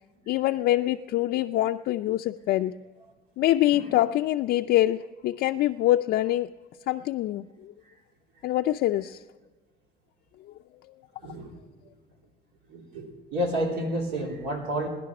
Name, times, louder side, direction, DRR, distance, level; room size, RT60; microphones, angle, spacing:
voice 1, 0.3-2.7 3.4-6.5 6.9-7.7 8.4-9.2 10.8-10.9, left 14 dB, 70° left, 5 dB, 0.4 m, -25 dB
voice 2, 11.2-11.5 12.7-14.9, equal, 80° right, 1 dB, 3.2 m, -30 dB
18.0 x 10.5 x 5.9 m, 1.2 s
cardioid pair, 110°, 17 cm